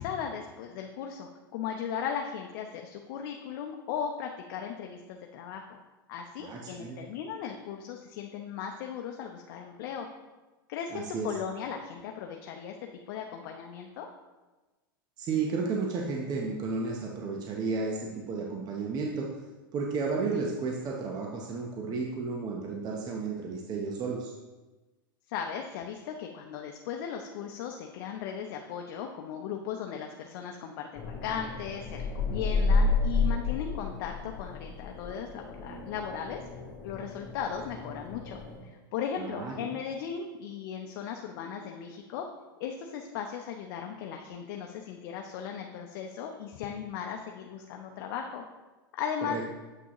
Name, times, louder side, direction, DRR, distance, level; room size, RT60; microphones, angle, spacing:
voice 1, 0.0-5.8 6.1-10.1 10.7-14.1 25.3-36.4 36.8-42.3 42.6-48.4 48.9-49.4, left 8 dB, 60° left, 3 dB, 0.7 m, -37 dB
voice 2, 6.4-7.0 10.9-11.3 15.2-19.3 19.7-24.3 39.2-39.7 49.2-49.4, right 4 dB, 35° right, 0 dB, 0.9 m, -33 dB
sound 1, 30.9-38.6, left 3 dB, 35° left, 2.4 m, -31 dB
7.6 x 6.0 x 3.0 m, 1.2 s
hypercardioid pair, 115°, 12 cm